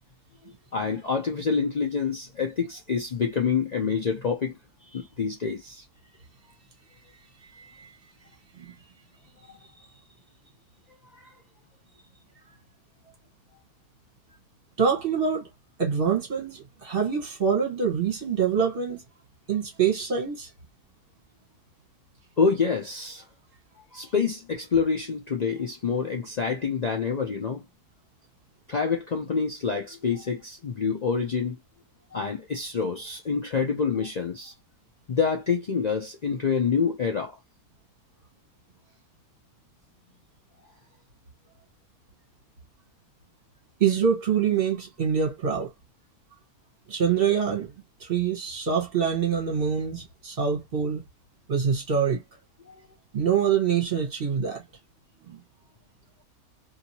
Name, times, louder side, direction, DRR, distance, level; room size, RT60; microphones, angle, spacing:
voice 1, 0.7-4.5 4.9-5.8 11.2-11.3 22.4-23.2 23.9-27.6 28.7-31.6 32.1-34.5 35.1-37.4 52.7-52.8, left 5 dB, 90° left, 0.3 m, -27 dB
voice 2, 14.8-15.5 15.8-19.0 19.5-20.5 43.8-45.7 46.9-47.7 48.0-51.0 51.5-52.2 53.1-54.6 55.3-55.4, right 7 dB, 40° right, 1.2 m, -25 dB
2.9 x 2.8 x 2.6 m
omnidirectional pair, 1.6 m